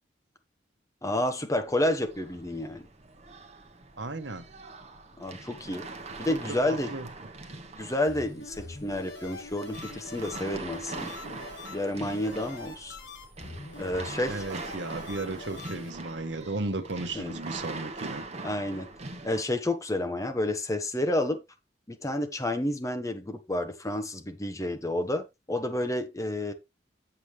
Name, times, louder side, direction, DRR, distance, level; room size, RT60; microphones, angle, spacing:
voice 1, 1.0-2.8 5.2-5.9 6.2-6.9 7.8-11.1 11.7-13.0 13.8-14.4 17.1-17.3 18.4-18.9 19.2-21.4 21.9-26.5, left 1 dB, 20° left, 1.3 m, -30 dB
sound 1, 1.6-19.4, right 3 dB, 35° right, 1.2 m, -42 dB
voice 2, 4.0-4.4 6.3-6.4 6.7-7.1 14.3-18.3, right 2 dB, 70° right, 1.1 m, -35 dB
sound 2, 8.1-15.9, left 3 dB, 90° left, 4.6 m, -44 dB
7.9 x 7.1 x 3.2 m
head